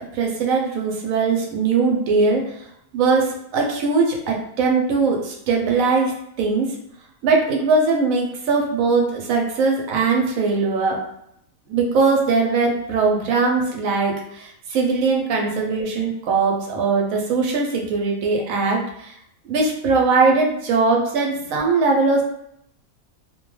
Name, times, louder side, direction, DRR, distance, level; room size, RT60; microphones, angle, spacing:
voice 1, 0.0-2.4 2.9-6.1 6.4-6.7 7.2-11.0 11.7-19.1 19.5-22.2, right 4 dB, 75° right, 0 dB, 1.0 m, -20 dB
2.5 x 2.2 x 3.1 m, 0.74 s
omnidirectional pair, 1.5 m